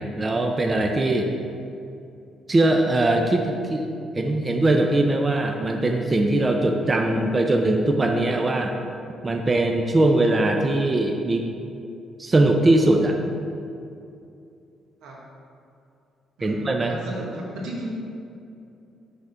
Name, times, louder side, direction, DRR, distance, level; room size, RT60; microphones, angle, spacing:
voice 1, 0.0-1.3 2.5-3.9 4.1-8.7 9.2-11.5 12.2-13.2 16.4-16.9, right 2 dB, 25° right, 3 dB, 0.5 m, -21 dB
voice 2, 16.9-17.9, right 1 dB, 90° right, -3 dB, 1.3 m, -34 dB
6.2 x 3.6 x 5.7 m, 2.6 s
cardioid pair, 90°, 0 cm